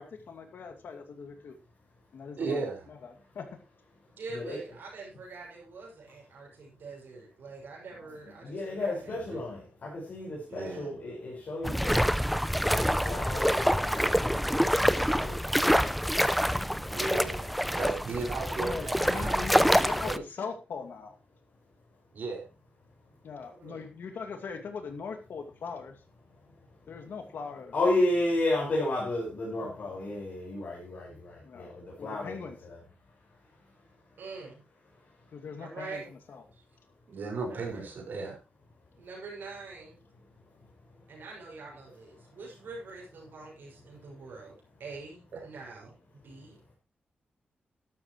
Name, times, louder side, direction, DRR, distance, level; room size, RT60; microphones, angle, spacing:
voice 1, 0.0-1.5 2.1-3.5 8.0-8.1 15.6-16.0 18.6-21.2 23.2-25.9 26.9-27.7 31.4-32.6 35.3-36.0 36.3-36.4, left 5 dB, 75° left, 5 dB, 2.5 m, -41 dB
voice 2, 2.4-2.9 9.2-9.4 10.5-10.9 16.9-19.5 19.7-20.2 22.1-22.5 37.1-38.4 45.3-45.4, right 3 dB, 60° right, 1 dB, 5.7 m, -36 dB
voice 3, 4.1-9.1 23.6-23.8 29.5-29.9 34.2-34.6 35.6-36.1 37.5-37.9 39.0-40.0 41.1-44.5 44.8-46.0 46.2-46.7, right 3 dB, 75° right, -3 dB, 6.5 m, -45 dB
voice 4, 8.2-12.1 12.7-12.8 13.0-15.4 16.6-16.8 27.7-32.8 37.5-37.8, left 2 dB, 50° left, -5 dB, 5.5 m, -32 dB
sound 1, 11.6-20.2, equal, ahead, 0.5 m, -26 dB
13.0 x 12.5 x 3.2 m, 0.29 s
wide cardioid pair, 175°, 3 cm